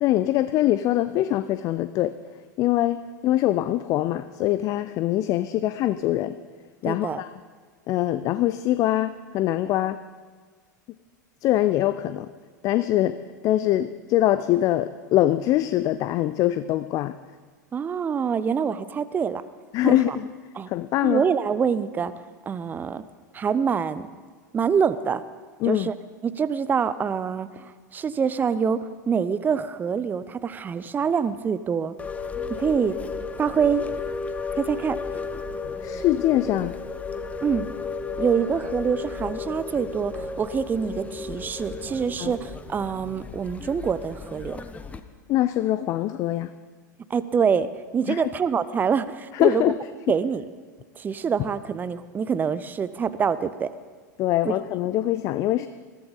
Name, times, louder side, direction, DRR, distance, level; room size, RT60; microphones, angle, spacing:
voice 1, 0.0-2.2 2.6-6.4 6.8-7.3 7.9-10.0 11.4-12.3 12.6-13.2 13.4-17.2 19.7-20.3 20.7-21.2 25.6-25.9 35.8-36.8 42.2-42.4 45.3-46.5 48.1-48.2 49.3-49.8 54.2-55.7, left 14 dB, 35° left, 12 dB, 0.5 m, -23 dB
voice 2, 6.8-7.2 17.7-19.4 19.8-20.2 20.6-20.7 21.0-22.1 22.5-23.0 23.3-24.1 24.5-25.2 25.7-26.0 26.2-31.9 32.6-33.0 33.4-33.8 34.6-35.0 37.4-37.7 38.2-44.6 47.1-47.7 47.9-49.6 50.1-50.4 51.0-53.7, right 6 dB, 20° right, 14 dB, 0.6 m, -25 dB
sound 1, 32.0-45.0, left 4 dB, 15° left, 0.8 m, -34 dB
21.0 x 14.0 x 4.0 m, 1.5 s
figure-of-eight pair, 90°, 10 cm